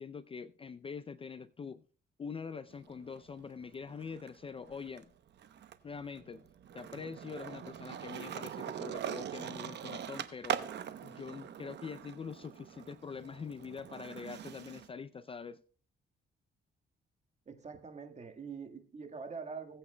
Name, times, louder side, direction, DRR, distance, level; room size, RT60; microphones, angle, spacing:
voice 1, 0.0-1.8 2.2-5.1 5.8-6.4 6.7-10.6 11.0-15.6, left 5 dB, 30° left, 0.4 m, -44 dB
Skateboard, 2.7-4.3 4.6-14.9, right 9 dB, 60° right, 0.8 m, -42 dB
voice 2, 17.5-19.8, right 5 dB, 35° right, 1.6 m, -44 dB
19.0 x 8.4 x 2.2 m
cardioid pair, 90°, 20 cm